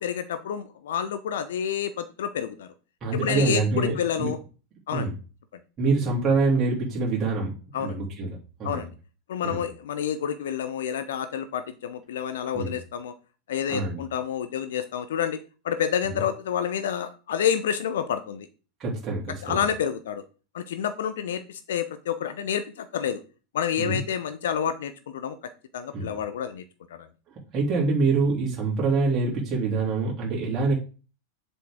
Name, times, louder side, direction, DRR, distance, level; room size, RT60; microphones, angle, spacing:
voice 1, 0.0-2.7 3.2-4.4 4.9-5.1 7.7-8.0 8.6-8.9 9.3-13.1 13.5-15.4 15.6-18.5 19.4-20.2 20.5-23.2 23.5-25.4 25.7-26.6 26.9-27.1, left 8 dB, 60° left, 11 dB, 0.7 m, -29 dB
voice 2, 3.0-4.3 4.9-5.1 5.8-7.5 7.8-8.8 9.4-9.6 12.5-12.8 13.7-14.0 16.1-16.2 18.8-19.6 23.8-24.0 25.9-26.1 27.5-30.7, right 3 dB, 25° right, -4 dB, 3.2 m, -25 dB
7.4 x 7.0 x 3.7 m, 0.34 s
figure-of-eight pair, 90°, 0 cm